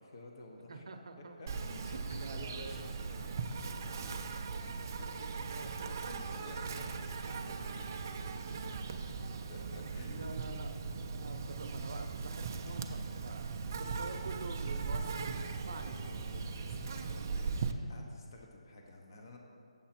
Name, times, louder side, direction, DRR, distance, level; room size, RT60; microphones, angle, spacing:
voice 1, 0.0-0.8 1.4-5.7 6.0-9.2 9.5-10.3 11.4-11.5 15.8-19.4, left 2 dB, 35° left, 1 dB, 0.8 m, -53 dB
voice 2, 0.7-1.4 1.9-2.6 5.5-5.7 10.0-10.7 11.1-16.1 17.4-17.9, right 3 dB, 55° right, 5 dB, 0.7 m, -47 dB
Insect, 1.5-17.7, right 4 dB, 25° right, 0.3 m, -39 dB
7.9 x 7.1 x 4.3 m, 2.4 s
hypercardioid pair, 175°, 4 cm